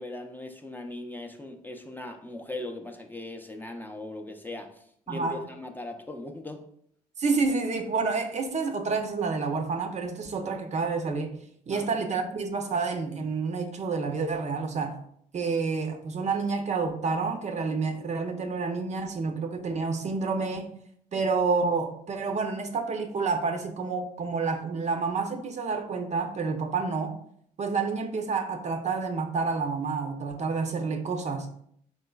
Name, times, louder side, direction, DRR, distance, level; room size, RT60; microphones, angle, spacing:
voice 1, 0.0-6.6 11.7-11.9 21.1-21.2, left 1 dB, 10° left, 3 dB, 0.5 m, -39 dB
voice 2, 7.2-15.0 15.3-20.7 21.1-27.2 27.6-31.5, right 4 dB, 40° right, 6 dB, 0.5 m, -29 dB
3.8 x 3.0 x 2.3 m, 0.66 s
supercardioid pair, 60°, 17 cm